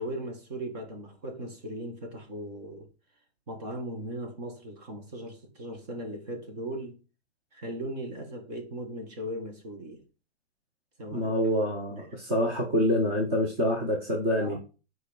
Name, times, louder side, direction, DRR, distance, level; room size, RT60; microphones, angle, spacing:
voice 1, 0.0-2.9 3.5-7.0 7.5-10.0 11.0-11.3 11.9-12.1 14.4-14.6, right 1 dB, 40° right, 1.8 m, -38 dB
voice 2, 11.1-14.6, equal, 15° right, 0.5 m, -26 dB
6.8 x 4.7 x 5.2 m
hypercardioid pair, 175°, 33 cm